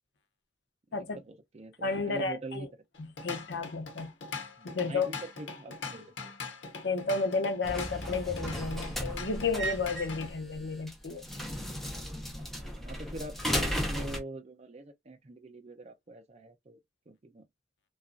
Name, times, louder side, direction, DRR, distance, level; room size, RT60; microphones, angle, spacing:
voice 1, 1.2-2.7 4.6-6.3 12.4-16.8 17.1-17.5, right 2 dB, 35° right, 0.5 m, -44 dB
voice 2, 1.8-2.7 3.0-4.1 4.6-5.1 6.8-11.3, left 4 dB, 70° left, 0.6 m, -32 dB
Drum kit / Drum, 2.9-10.3, left 4 dB, 90° left, 0.9 m, -42 dB
sound 1, 7.6-14.2, equal, ahead, 0.7 m, -35 dB
2.9 x 2.3 x 2.5 m
head